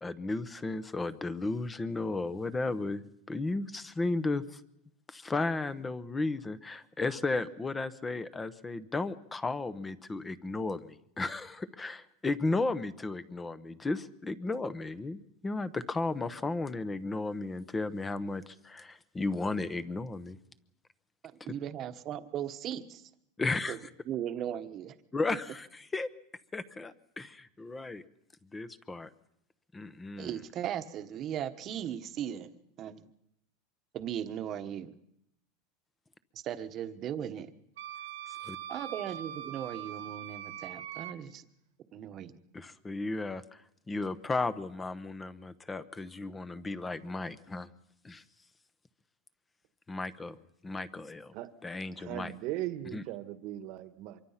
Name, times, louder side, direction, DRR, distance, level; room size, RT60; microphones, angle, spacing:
voice 1, 0.0-4.6 5.1-20.4 23.4-23.8 25.1-26.1 26.5-28.0 28.5-29.1 29.7-30.3 38.4-38.6 42.5-43.4 43.9-47.7 48.0-48.2 49.9-50.3 50.6-51.3 51.6-52.3 52.9-53.0, left 3 dB, 10° left, 13 dB, 0.9 m, -34 dB
voice 2, 21.4-23.1 23.7-23.8 24.1-25.0 30.2-32.5 32.8-33.1 33.9-34.9 36.3-37.5 38.7-41.5 41.9-42.4, right 10 dB, 35° right, 9 dB, 1.2 m, -37 dB
Wind instrument woodwind instrument, 37.8-41.1, right 11 dB, 85° right, 2.1 m, -42 dB
voice 3, 51.9-54.2, right 14 dB, 50° right, 11 dB, 1.4 m, -38 dB
25.0 x 23.5 x 5.8 m, 0.78 s
supercardioid pair, 150°, 0 cm